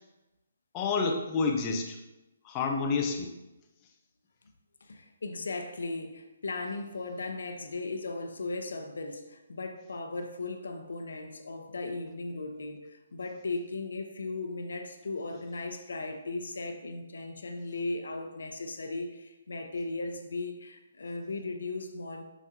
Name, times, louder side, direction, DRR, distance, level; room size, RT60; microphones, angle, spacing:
voice 1, 0.7-2.0 2.4-3.3, left 4 dB, 20° left, 1 dB, 0.8 m, -29 dB
voice 2, 4.8-22.2, left 3 dB, 80° left, 5 dB, 0.9 m, -37 dB
7.0 x 6.2 x 2.8 m, 1.0 s
hypercardioid pair, 155°, 0 cm